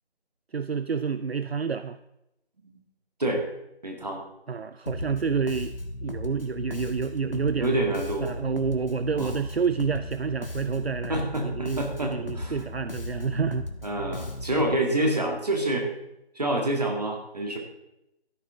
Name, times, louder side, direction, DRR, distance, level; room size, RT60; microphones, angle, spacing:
voice 1, 0.5-2.0 4.5-5.7 6.0-7.8 8.2-13.7, right 5 dB, 70° right, 12 dB, 0.5 m, -29 dB
voice 2, 3.8-4.2 7.6-8.3 9.2-9.3 11.1-12.6 13.8-15.9 16.4-17.6, right 1 dB, 40° right, 1 dB, 2.2 m, -27 dB
Bass guitar, 4.9-14.7, left 2 dB, 60° left, 1.5 m, -36 dB
13.0 x 10.5 x 3.6 m, 0.86 s
figure-of-eight pair, 170°, 32 cm